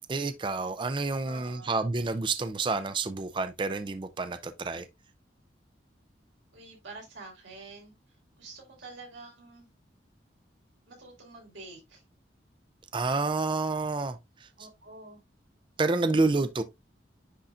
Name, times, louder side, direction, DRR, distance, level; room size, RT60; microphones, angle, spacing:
voice 1, 0.1-4.9 12.9-14.5 15.8-16.6, right 3 dB, 25° right, 0.4 m, -29 dB
voice 2, 1.2-1.8 6.5-7.9 8.4-9.7 10.9-12.0 14.6-15.2, right 3 dB, 85° right, 3.6 m, -47 dB
9.9 x 3.9 x 2.4 m
head